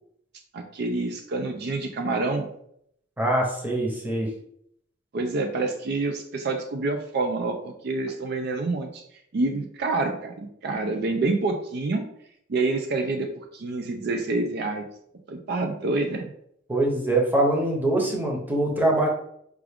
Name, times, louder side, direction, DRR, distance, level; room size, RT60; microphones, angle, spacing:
voice 1, 0.5-2.5 5.1-9.0 9.3-12.0 12.5-14.9 15.3-16.3, right 3 dB, 55° right, 5 dB, 0.4 m, -27 dB
voice 2, 3.2-4.3 16.7-19.1, right 1 dB, 10° right, -1 dB, 0.8 m, -23 dB
4.7 x 2.4 x 3.5 m, 0.70 s
head